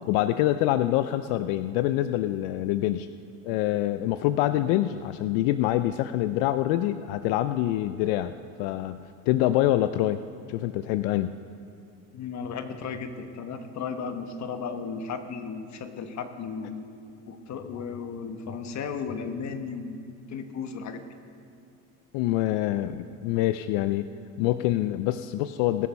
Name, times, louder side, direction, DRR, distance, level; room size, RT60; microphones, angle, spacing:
voice 1, 0.1-3.1 3.4-8.3 8.6-10.2 10.5-11.4 22.1-24.1 24.4-25.9, left 14 dB, 85° left, 12 dB, 0.5 m, -25 dB
voice 2, 12.1-16.8 17.3-21.1, left 5 dB, 50° left, 8 dB, 1.3 m, -35 dB
20.0 x 6.8 x 5.6 m, 2.5 s
supercardioid pair, 100°, 36 cm